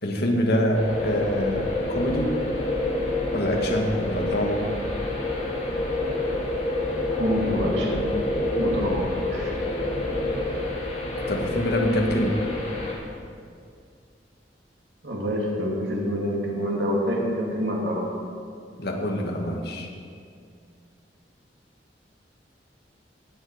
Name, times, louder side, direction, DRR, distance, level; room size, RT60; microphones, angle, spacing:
voice 1, 0.0-2.4 3.3-4.7 11.3-12.4 18.8-19.9, equal, 65° left, 1 dB, 1.7 m, -25 dB
sound 1, 0.7-12.9, left 2 dB, 45° left, 2.5 m, -28 dB
voice 2, 7.2-8.2 8.5-9.6 15.0-18.1, equal, 80° right, -2 dB, 2.6 m, -27 dB
18.0 x 7.1 x 5.0 m, 2.3 s
head